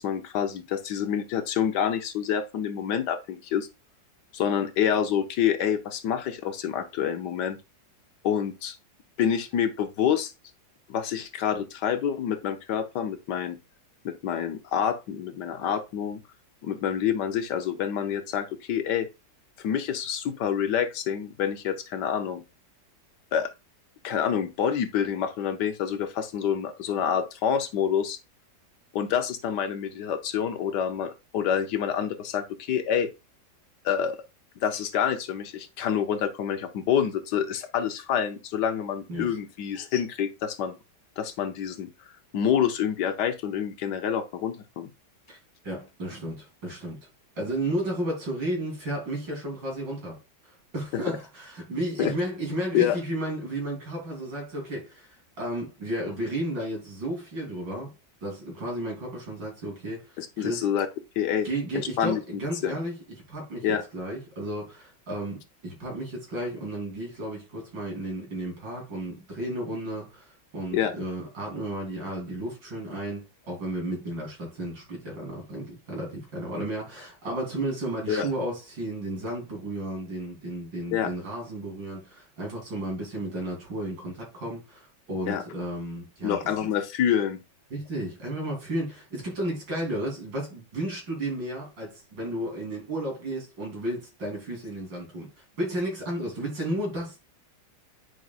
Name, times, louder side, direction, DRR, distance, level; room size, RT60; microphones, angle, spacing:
voice 1, 0.0-3.7 4.3-7.6 8.2-8.8 9.2-10.3 10.9-13.6 14.0-16.2 16.6-19.1 19.6-22.4 23.3-23.5 24.0-28.2 28.9-33.1 33.8-34.2 34.6-40.8 41.2-41.9 42.3-44.9 50.9-51.0 52.0-52.1 52.7-53.0 60.2-60.9 61.2-61.5 61.7-62.8 63.6-63.8 70.7-70.9 78.1-78.3 80.9-81.1 85.3-85.4 86.2-87.4, left 8 dB, 70° left, 1.3 m, -27 dB
voice 2, 45.6-47.0 47.4-50.2 50.4-57.9 58.2-60.7 61.4-62.9 63.3-86.4 87.7-95.3 95.6-97.2, right 1 dB, 85° right, 4.1 m, -33 dB
9.4 x 5.1 x 2.4 m
omnidirectional pair, 1.9 m